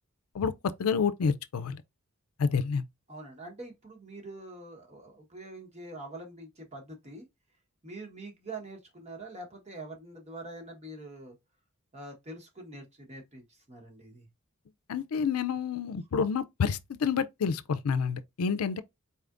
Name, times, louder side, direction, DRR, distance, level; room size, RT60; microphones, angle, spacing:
voice 1, 0.8-1.8 2.4-2.8 14.9-18.8, left 6 dB, 80° left, 0.4 m, -29 dB
voice 2, 3.1-7.2 7.8-11.4 11.9-14.3, right 2 dB, 30° right, 1.2 m, -45 dB
4.2 x 3.4 x 2.5 m
head